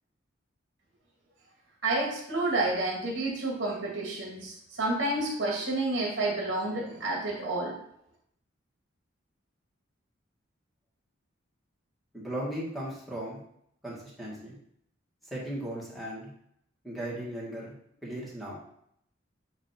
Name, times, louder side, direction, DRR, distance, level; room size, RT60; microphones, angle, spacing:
voice 1, 1.8-7.7, right 2 dB, 60° right, -2 dB, 2.2 m, -30 dB
voice 2, 12.1-13.4 13.8-14.6 15.3-16.3 16.8-17.7 18.0-18.6, right 1 dB, ahead, -6 dB, 1.9 m, -37 dB
8.9 x 3.2 x 4.5 m, 0.71 s
head